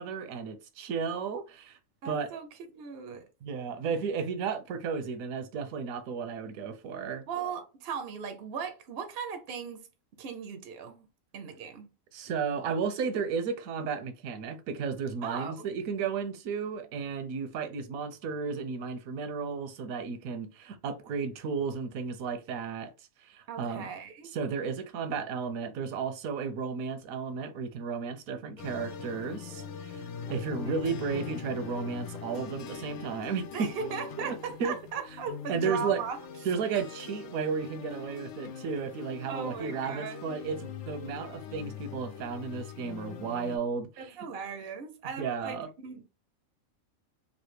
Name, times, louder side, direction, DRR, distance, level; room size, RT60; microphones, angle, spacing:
voice 1, 0.0-1.8 2.0-2.3 3.4-7.3 12.1-22.9 23.2-23.9 24.3-30.0 30.3-33.7 34.2-34.7 35.5-36.0 36.4-44.2 45.2-45.7, right 5 dB, 80° right, 1.0 m, -33 dB
voice 2, 2.0-3.2 7.3-9.9 10.2-11.1 11.3-11.9 15.2-15.7 23.5-24.3 30.3-30.8 33.5-36.2 39.3-40.2 44.0-46.0, right 6 dB, 60° right, 0.6 m, -38 dB
sound 1, 28.6-43.6, left 6 dB, 85° left, 1.1 m, -42 dB
3.2 x 2.4 x 3.1 m
omnidirectional pair, 1.5 m